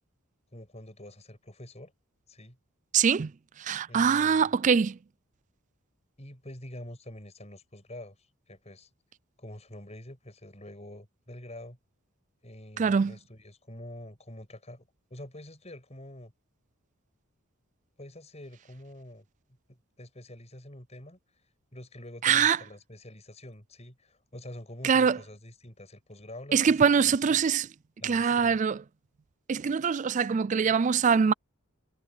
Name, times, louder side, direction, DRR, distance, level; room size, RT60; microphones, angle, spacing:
voice 1, 0.5-1.9 2.3-2.6 3.9-4.5 6.2-8.9 9.4-11.8 12.4-16.3 18.0-19.3 19.7-21.2 21.7-27.4 28.0-28.6, left 1 dB, 30° left, 6.6 m, -46 dB
voice 2, 2.9-3.3 3.6-5.0 12.8-13.1 22.2-22.6 24.8-25.2 26.5-27.7 28.0-28.8 29.5-31.3, right 6 dB, 35° right, 0.3 m, -23 dB
head